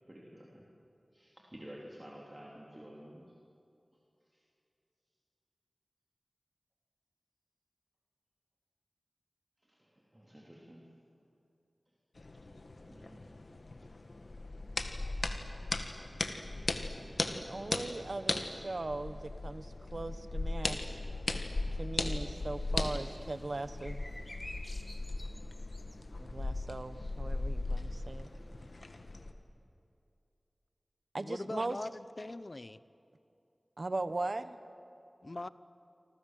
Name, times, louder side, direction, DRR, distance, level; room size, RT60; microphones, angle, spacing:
voice 1, 0.1-0.6 1.1-3.2 9.7-9.8 10.1-10.8 12.8-13.4, equal, 20° right, -3 dB, 3.5 m, -51 dB
sound 1, 12.2-29.3, left 2 dB, 65° left, 1.8 m, -38 dB
voice 2, 17.3-21.0 21.8-24.0 26.2-28.3 31.1-31.8 33.8-34.6, right 2 dB, 55° right, 12 dB, 1.2 m, -39 dB
sound 2, 22.0-29.3, left 1 dB, 30° left, 2.4 m, -53 dB
voice 3, 31.2-32.8 35.2-35.5, left 2 dB, 50° left, 15 dB, 0.8 m, -41 dB
28.5 x 25.0 x 7.7 m, 2.6 s
wide cardioid pair, 70°, 0 cm